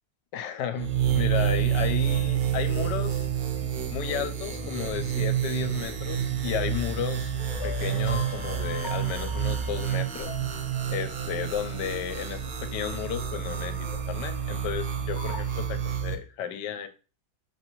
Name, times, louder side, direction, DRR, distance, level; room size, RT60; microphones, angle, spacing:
voice 1, 0.3-3.3 3.9-7.3 7.6-10.3 10.9-16.9, left 9 dB, 80° left, 1.2 m, -33 dB
sound 1, 0.7-16.0, right 3 dB, 65° right, 2.2 m, -52 dB
sound 2, 0.8-16.1, right 9 dB, 85° right, 1.4 m, -29 dB
sound 3, 3.7-15.4, left 3 dB, 45° left, 1.0 m, -42 dB
6.6 x 2.6 x 2.9 m
omnidirectional pair, 1.9 m